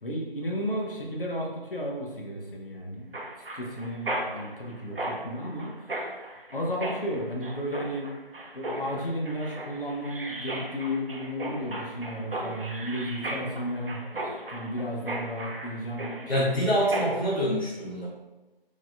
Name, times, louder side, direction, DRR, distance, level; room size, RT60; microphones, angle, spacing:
voice 1, 0.0-3.1 3.5-5.9 6.5-8.1 8.5-16.5, equal, 65° left, -1 dB, 1.0 m, -33 dB
Mechanisms, 3.1-17.3, right 1 dB, 65° right, 0.7 m, -36 dB
voice 2, 16.3-18.1, equal, 85° left, -7 dB, 1.3 m, -25 dB
4.7 x 3.1 x 2.3 m, 1.1 s
figure-of-eight pair, 175°, 30 cm